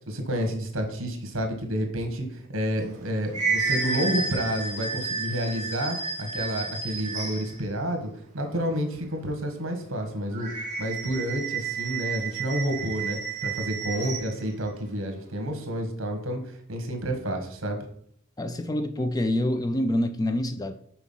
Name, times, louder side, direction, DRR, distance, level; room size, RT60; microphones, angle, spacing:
voice 1, 0.1-10.5 10.8-17.9, equal, 65° right, 1.5 m, -30 dB
sound 1, 2.8-7.6 10.3-14.3, right 4 dB, 35° right, 2.1 m, -31 dB
voice 2, 18.4-20.7, left 1 dB, 15° left, 0.4 m, -26 dB
6.0 x 4.5 x 5.6 m
head